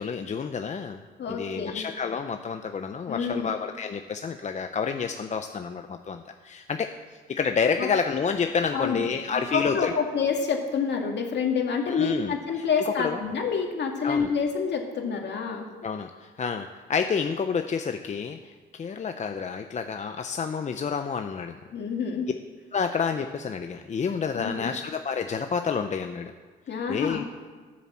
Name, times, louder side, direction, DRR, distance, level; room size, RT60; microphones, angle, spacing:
voice 1, 0.0-1.0 1.3-6.9 7.3-9.9 11.9-13.2 14.0-14.3 15.8-21.6 22.7-26.3 26.9-27.2, left 6 dB, 35° left, 7 dB, 0.6 m, -29 dB
voice 2, 1.2-1.8 3.1-3.5 7.8-7.9 8.7-9.0 9.3-15.7 21.7-22.3 24.3-24.7 26.7-27.3, left 5 dB, 60° left, 2 dB, 2.2 m, -28 dB
12.5 x 7.2 x 7.4 m, 1.5 s
cardioid pair, 90°, 20 cm